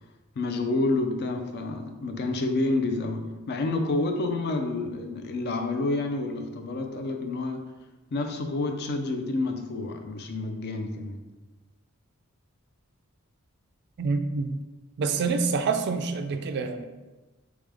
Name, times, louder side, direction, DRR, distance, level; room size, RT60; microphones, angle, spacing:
voice 1, 0.4-7.7 8.1-11.2, left 2 dB, 50° left, 0.4 m, -29 dB
voice 2, 14.0-14.5 15.0-16.8, right 4 dB, 50° right, 0.3 m, -27 dB
3.7 x 3.5 x 3.4 m
head